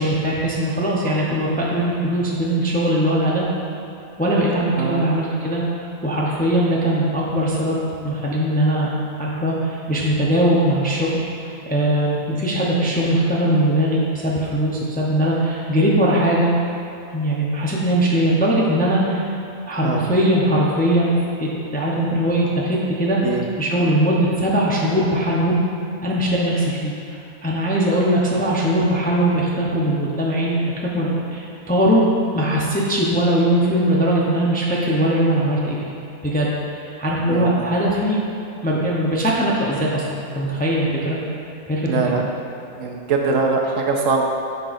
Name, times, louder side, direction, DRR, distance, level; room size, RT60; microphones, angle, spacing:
voice 1, 0.0-3.5 4.2-5.6 6.0-7.8 8.0-8.9 9.2-11.2 11.6-16.5 17.1-19.3 19.7-23.2 23.6-25.6 26.0-32.1 32.3-35.9 36.2-38.2 38.6-41.2 41.7-42.2, right 1 dB, 10° left, -5 dB, 0.5 m, -20 dB
voice 2, 37.3-37.6 41.9-42.2 42.8-44.2, right 4 dB, 70° right, 1 dB, 0.9 m, -22 dB
9.9 x 5.5 x 2.6 m, 2.8 s
omnidirectional pair, 1.5 m